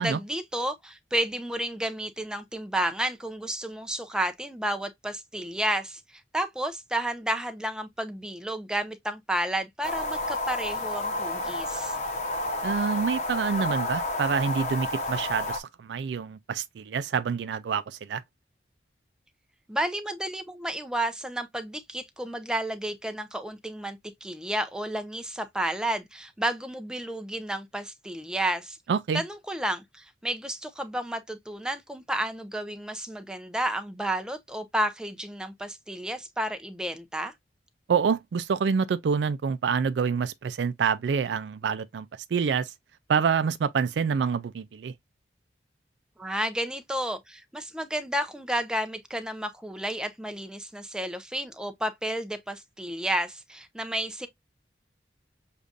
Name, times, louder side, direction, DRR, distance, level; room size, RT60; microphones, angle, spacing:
voice 1, 0.0-6.0 6.3-12.0 19.7-28.8 29.1-37.3 46.2-54.3, right 1 dB, 5° right, 0.5 m, -31 dB
sound 1, 9.8-15.6, left 2 dB, 40° left, 0.9 m, -30 dB
voice 2, 12.6-18.2 28.9-29.2 37.9-42.7 43.1-44.9, right 6 dB, 75° right, 0.4 m, -27 dB
6.6 x 2.4 x 2.4 m
head